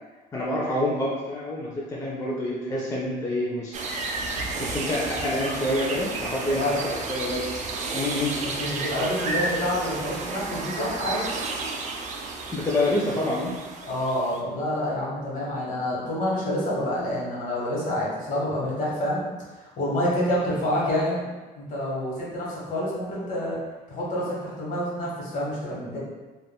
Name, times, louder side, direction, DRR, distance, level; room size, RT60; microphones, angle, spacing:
voice 1, 0.3-3.8 4.5-7.4 7.9-8.3 12.5-13.5, left 1 dB, 20° left, -5 dB, 0.5 m, -27 dB
sound 1, 3.7-14.4, right 3 dB, 45° right, 0.4 m, -32 dB
voice 2, 6.5-6.8 8.4-11.2 13.9-19.2 19.6-21.2 21.5-23.6 23.9-26.0, left 1 dB, 50° left, -5 dB, 1.1 m, -28 dB
3.3 x 2.4 x 2.2 m, 1.2 s
cardioid pair, 110°, 17 cm